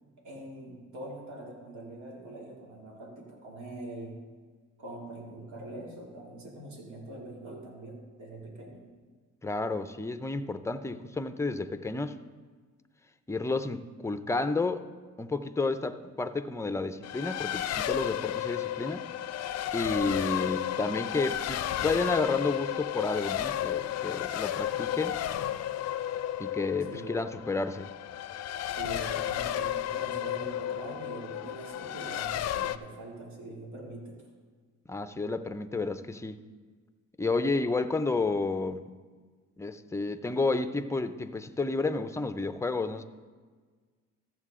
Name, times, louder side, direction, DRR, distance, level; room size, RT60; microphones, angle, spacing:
voice 1, 0.2-4.2 4.8-8.8 26.9-27.2 28.7-34.2, right 1 dB, 75° right, -2 dB, 2.6 m, -43 dB
voice 2, 9.4-12.2 13.3-14.8 15.2-19.0 19.7-25.2 26.4-27.9 34.9-36.4 37.2-38.8 39.6-43.0, left 3 dB, 10° left, 10 dB, 0.5 m, -31 dB
Race car auto racing, 17.0-32.8, left 11 dB, 60° left, 0.5 m, -33 dB
14.0 x 7.5 x 3.7 m, 1.5 s
cardioid pair, 90°, 30 cm